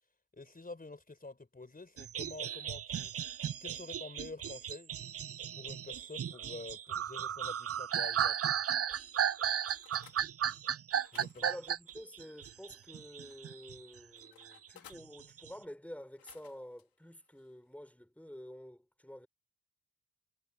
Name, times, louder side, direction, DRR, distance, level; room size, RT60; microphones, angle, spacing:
voice 1, 0.3-3.1 3.6-4.9 5.5-8.4 11.1-11.4, left 3 dB, 25° left, 4.1 m, -48 dB
sound 1, 2.0-13.8 14.1-15.5, right 9 dB, 40° right, 0.6 m, -35 dB
sound 2, 9.1-10.2 10.9-12.9 13.3-15.1 16.0-16.8 17.3-17.6, left 10 dB, 75° left, 2.7 m, -60 dB
voice 2, 11.3-19.3, equal, 5° left, 5.7 m, -49 dB
supercardioid pair, 50°, 36 cm